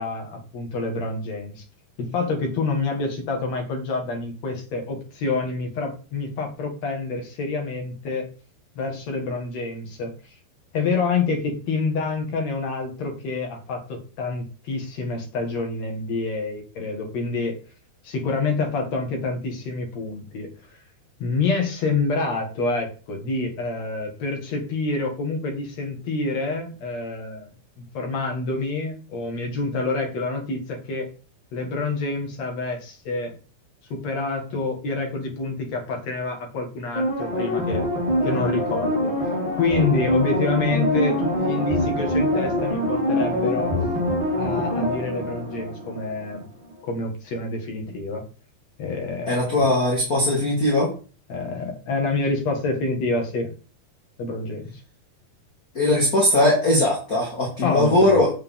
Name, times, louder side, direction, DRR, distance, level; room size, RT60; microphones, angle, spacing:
voice 1, 0.0-1.6 2.0-8.3 8.8-10.1 10.7-17.6 18.0-20.5 21.2-31.1 31.5-33.3 33.9-37.8 38.2-43.7 44.4-46.5 46.8-48.3 48.8-49.3 51.3-53.5 54.2-54.7 57.6-58.2, left 3 dB, 50° left, 2 dB, 2.5 m, -27 dB
sound 1, 36.9-46.3 46.7-46.8, equal, 10° right, 3.5 m, -24 dB
voice 2, 49.3-50.9 55.7-58.3, left 1 dB, 25° left, -4 dB, 2.2 m, -19 dB
7.8 x 7.2 x 3.7 m, 0.36 s
omnidirectional pair, 4.5 m